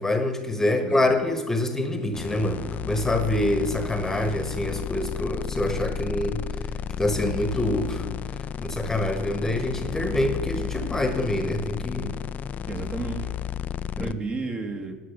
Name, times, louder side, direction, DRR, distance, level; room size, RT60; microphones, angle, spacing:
voice 1, 0.0-6.5 7.0-8.1 8.6-12.2 14.0-14.1, left 1 dB, 10° left, 8 dB, 1.2 m, -26 dB
voice 2, 0.7-1.2 12.7-13.3 13.9-15.0, right 4 dB, 30° right, 5 dB, 1.5 m, -33 dB
sound 1, 2.1-14.1, left 9 dB, 40° left, 0.4 m, -32 dB
10.0 x 8.8 x 5.9 m, 1.4 s
hypercardioid pair, 85°, 4 cm